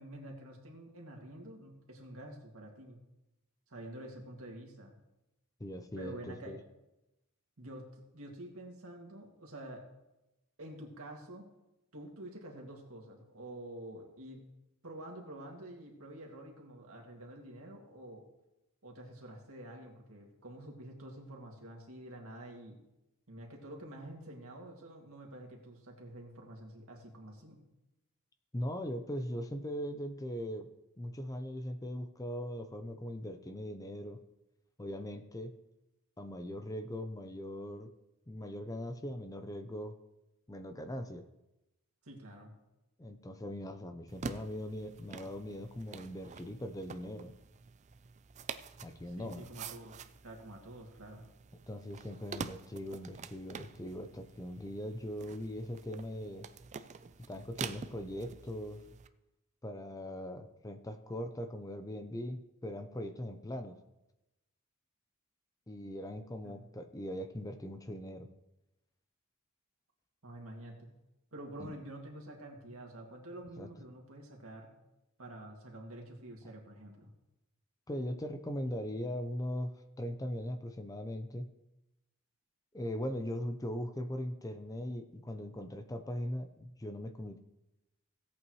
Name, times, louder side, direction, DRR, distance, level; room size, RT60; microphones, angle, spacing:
voice 1, 0.0-3.0 3.7-4.9 6.0-6.6 7.6-9.8 10.6-11.5 11.9-14.4 14.8-18.2 18.8-22.8 23.3-27.6 42.0-42.5 49.0-51.2 66.4-66.6 70.2-70.9 71.3-74.7 75.2-77.1, right 1 dB, 70° right, 0 dB, 2.2 m, -48 dB
voice 2, 5.6-6.6 28.5-30.7 31.0-34.2 34.8-35.5 36.2-37.9 38.3-40.0 40.5-41.2 43.0-47.3 48.8-49.4 51.7-56.5 57.3-58.8 59.6-63.8 65.7-68.3 71.6-71.7 73.6-73.7 77.9-79.7 80.0-81.5 82.7-87.4, equal, 15° left, 8 dB, 0.6 m, -40 dB
sound 1, 44.1-59.1, right 5 dB, 30° right, 0.4 m, -47 dB
16.5 x 8.4 x 3.1 m, 0.93 s
head